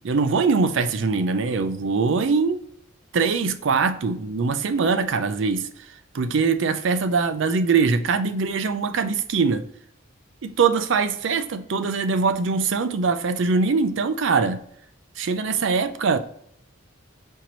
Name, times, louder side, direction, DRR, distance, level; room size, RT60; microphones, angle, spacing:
voice 1, 0.0-2.6 3.1-5.7 6.1-9.6 10.4-14.6 15.2-16.2, right 4 dB, 70° right, 0.5 m, -22 dB
4.5 x 3.0 x 3.9 m
head